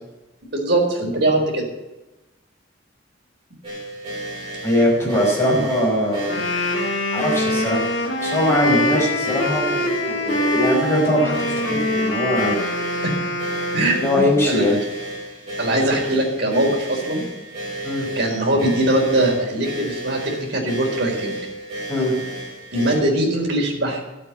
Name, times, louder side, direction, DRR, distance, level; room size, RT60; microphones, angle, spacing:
voice 1, 0.4-1.7 8.6-8.9 13.0-13.1 13.7-14.0 14.4-14.7 15.6-17.2 17.9-20.2 20.5-21.4 22.7-24.0, right 1 dB, 60° right, 0 dB, 4.6 m, -21 dB
sound 1, 3.6-23.0, right 1 dB, 30° right, 6.8 m, -32 dB
voice 2, 4.6-6.4 7.1-12.5 13.9-14.8 17.8-18.1 21.9-22.1, left 1 dB, 15° left, -3 dB, 5.7 m, -21 dB
Wind instrument woodwind instrument, 6.1-14.3, left 1 dB, 80° left, 3.3 m, -24 dB
12.5 x 8.6 x 9.4 m, 1.1 s
head